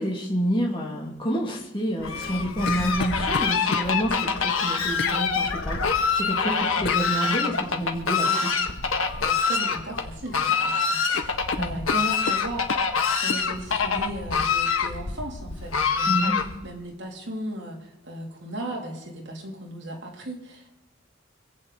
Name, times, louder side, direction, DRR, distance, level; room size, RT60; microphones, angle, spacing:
voice 1, 0.0-8.5 11.6-11.8 16.1-16.5, equal, 25° left, -2 dB, 2.8 m, -28 dB
Fowl, 2.0-16.8, left 5 dB, 85° left, 1.5 m, -25 dB
sound 1, 2.1-3.9 5.0-5.2 6.9-7.1 9.1-9.3 9.7-10.4 10.7-10.8 11.1-12.9 13.3-13.5, left 5 dB, 55° left, 0.5 m, -33 dB
voice 2, 9.2-16.3 16.6-20.7, right 1 dB, 60° right, -1 dB, 3.3 m, -36 dB
25.5 x 8.6 x 4.2 m, 0.96 s
head